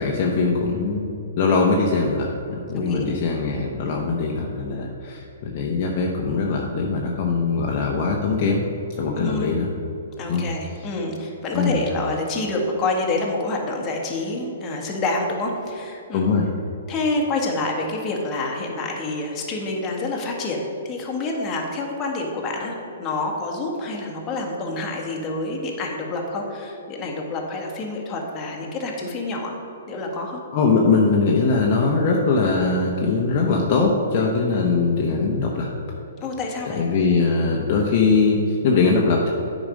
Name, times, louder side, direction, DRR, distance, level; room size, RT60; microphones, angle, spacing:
voice 1, 0.0-8.6 9.0-9.7 10.3-10.5 11.5-11.8 16.1-16.5 30.5-35.7 36.7-39.3, left 4 dB, 45° left, -1 dB, 0.9 m, -21 dB
voice 2, 2.7-3.2 9.1-9.6 10.2-16.3 16.9-22.7 23.0-29.6 29.9-30.4 36.2-36.8, left 2 dB, 25° left, -1 dB, 1.5 m, -27 dB
8.8 x 5.1 x 5.2 m, 3.0 s
hypercardioid pair, 135°, 0 cm